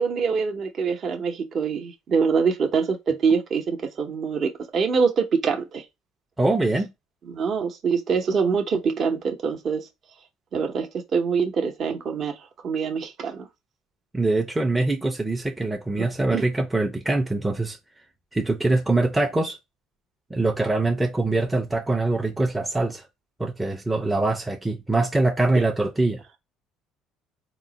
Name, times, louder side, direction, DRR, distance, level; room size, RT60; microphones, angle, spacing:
voice 1, 0.0-5.9 7.2-9.9 10.5-13.5 16.3-16.4, right 5 dB, 45° right, 0.7 m, -24 dB
voice 2, 6.4-6.9 14.1-17.8 18.3-19.6 20.3-23.0 23.4-26.2, right 2 dB, 10° right, 0.5 m, -23 dB
3.7 x 2.1 x 3.8 m
supercardioid pair, 100°, 0 cm